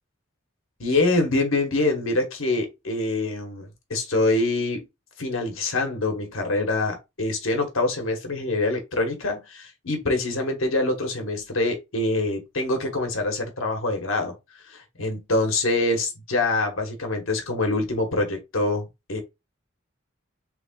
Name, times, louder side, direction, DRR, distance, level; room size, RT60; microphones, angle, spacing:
voice 1, 0.8-4.8 5.2-14.3 14.7-19.2, left 2 dB, 85° left, 1.3 m, -25 dB
3.7 x 3.4 x 3.6 m
head